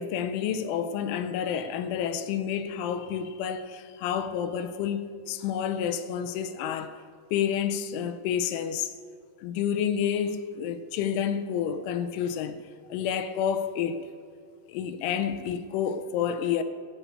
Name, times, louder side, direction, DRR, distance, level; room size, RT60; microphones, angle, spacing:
voice 1, 0.0-7.0 7.3-8.9 9.4-12.6 12.9-14.1 14.7-16.6, left 8 dB, 85° left, 3.2 m, -29 dB
13.0 x 8.6 x 5.5 m
omnidirectional pair, 5.4 m